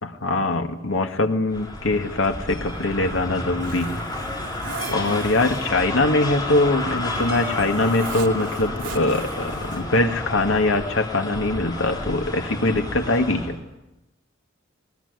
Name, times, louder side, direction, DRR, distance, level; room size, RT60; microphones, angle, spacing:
voice 1, 0.0-4.0 4.9-13.6, left 2 dB, 80° left, 5 dB, 1.9 m, -22 dB
sound 1, 1.5-13.6, left 2 dB, 20° left, 4.1 m, -31 dB
Zipper (clothing), 2.6-10.0, right 3 dB, 70° right, 2.6 m, -39 dB
21.0 x 20.0 x 9.7 m, 0.97 s
head